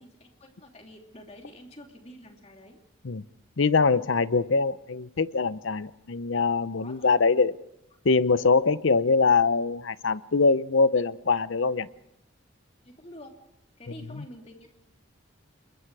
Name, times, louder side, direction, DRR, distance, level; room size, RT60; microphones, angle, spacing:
voice 1, 0.0-2.8 6.8-7.1 12.8-13.4 13.8-14.7, equal, 30° left, 2 dB, 2.9 m, -48 dB
voice 2, 3.6-7.5 8.0-11.9 14.1-14.2, left 4 dB, 65° left, 16 dB, 0.7 m, -23 dB
27.5 x 22.0 x 4.8 m, 0.83 s
head